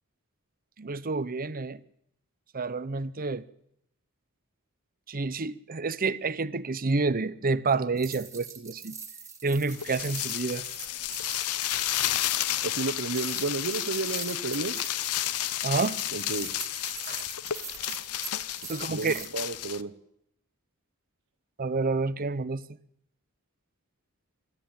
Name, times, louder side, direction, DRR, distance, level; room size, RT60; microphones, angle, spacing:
voice 1, 0.8-1.8 2.5-3.4 5.1-8.9 9.4-10.6 15.6-16.0 17.1-17.3 18.7-19.3 21.6-22.6, right 3 dB, 40° right, 0.8 m, -29 dB
sound 1, 8.0-19.3, right 6 dB, 15° right, 2.3 m, -43 dB
sound 2, 9.7-19.8, left 12 dB, 90° left, 0.8 m, -32 dB
voice 2, 12.6-14.8 16.1-16.5 18.9-19.9, right 3 dB, 65° right, 1.1 m, -32 dB
24.5 x 13.0 x 9.0 m
head